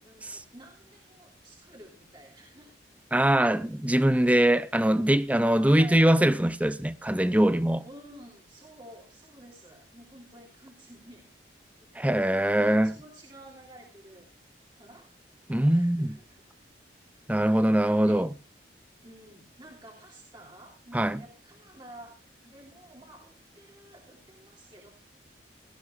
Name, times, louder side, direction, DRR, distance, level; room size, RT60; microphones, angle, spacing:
voice 1, 0.0-2.8 5.5-6.1 7.8-11.3 12.5-14.3 14.8-15.1 15.5-16.4 17.3-18.2 19.0-22.2 22.4-24.9, right 1 dB, 25° right, 3.0 m, -50 dB
voice 2, 3.1-7.8 12.0-12.9 15.5-16.1 17.3-18.3 20.9-21.2, right 1 dB, 10° right, 0.6 m, -22 dB
17.5 x 14.0 x 2.5 m
head